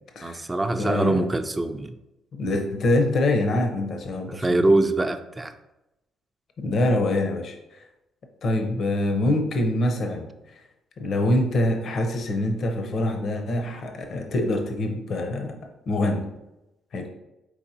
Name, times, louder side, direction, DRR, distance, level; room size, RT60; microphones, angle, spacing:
voice 1, 0.2-1.9 4.3-5.5, right 2 dB, 20° right, 9 dB, 0.4 m, -23 dB
voice 2, 0.8-1.2 2.4-4.6 6.6-7.6 8.4-10.3 11.0-15.6 15.9-16.3 16.9-17.1, left 1 dB, 55° left, 4 dB, 0.6 m, -24 dB
4.8 x 3.6 x 2.7 m, 0.93 s
cardioid pair, 95°, 0 cm